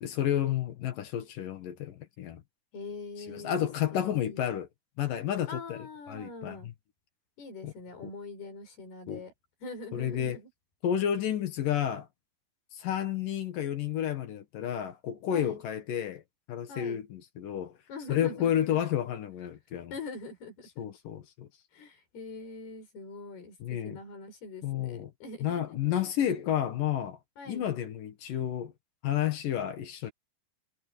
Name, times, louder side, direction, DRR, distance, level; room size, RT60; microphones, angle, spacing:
voice 1, 0.0-2.4 3.3-4.7 5.0-5.8 6.1-6.7 7.6-7.7 8.0-8.1 9.1-9.2 9.9-10.4 10.8-12.1 12.7-16.2 16.5-17.8 18.1-19.9 20.8-21.5 23.6-24.0 24.6-25.1 25.4-27.2 27.5-28.7 29.0-30.1, left 10 dB, 65° left, 2.9 m, -31 dB
voice 2, 2.7-4.5 5.5-6.7 7.4-9.3 9.6-10.5 15.3-15.6 16.7-17.0 17.9-18.8 19.9-20.9 21.7-26.1 27.4-27.7, left 3 dB, 80° left, 7.7 m, -43 dB
omnidirectional pair, 4.5 m